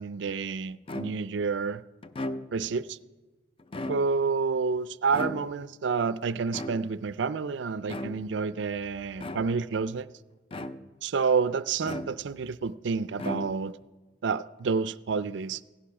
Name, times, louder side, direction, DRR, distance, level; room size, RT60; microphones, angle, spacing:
voice 1, 0.0-1.8 2.5-3.0 3.9-10.1 11.0-13.8 14.2-15.6, right 5 dB, 65° right, 0.4 m, -29 dB
sound 1, 0.9-1.4 2.0-2.8 3.6-4.4 5.1-5.8 6.5-7.2 7.8-8.4 9.2-9.8 10.5-11.1 11.8-12.5 13.1-13.9, left 1 dB, 30° left, 0.4 m, -37 dB
16.0 x 10.0 x 6.0 m
head